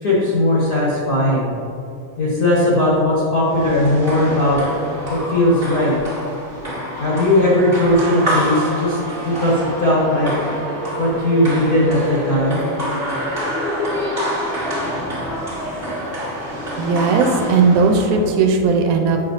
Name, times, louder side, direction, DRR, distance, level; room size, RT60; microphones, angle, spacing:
voice 1, 0.0-1.5 2.2-4.6 5.1-5.9 7.0-10.3 11.0-12.6, left 1 dB, 75° left, -7 dB, 0.8 m, -18 dB
sound 1, 3.5-18.3, equal, 35° right, 0.8 m, -27 dB
Trumpet, 7.7-12.2, right 3 dB, 65° right, 1.4 m, -33 dB
voice 2, 16.8-19.2, right 4 dB, 90° right, 2 dB, 2.1 m, -16 dB
8.3 x 5.8 x 2.7 m, 2.7 s
omnidirectional pair, 3.6 m